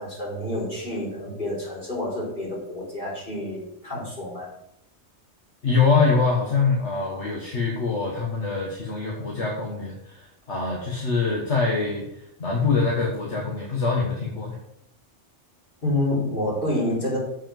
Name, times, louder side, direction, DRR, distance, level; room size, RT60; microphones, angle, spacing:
voice 1, 0.0-4.5 15.8-17.2, left 1 dB, 45° left, -5 dB, 4.2 m, -28 dB
voice 2, 5.6-14.6, left 4 dB, 65° left, -2 dB, 1.9 m, -24 dB
8.0 x 6.0 x 7.4 m, 0.78 s
omnidirectional pair, 1.3 m